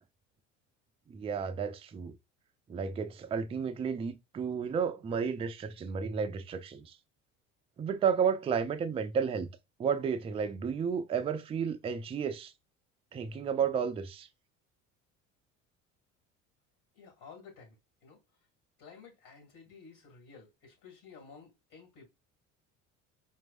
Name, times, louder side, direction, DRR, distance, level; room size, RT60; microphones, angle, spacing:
voice 1, 1.1-2.2 2.7-7.0 7.8-9.5 9.8-12.5 13.1-14.3, right 6 dB, 15° right, 0.3 m, -32 dB
voice 2, 16.9-17.8 18.0-18.2 18.8-22.1, left 5 dB, 50° left, 2.2 m, -53 dB
4.4 x 2.5 x 2.4 m
hypercardioid pair, 65°, 40 cm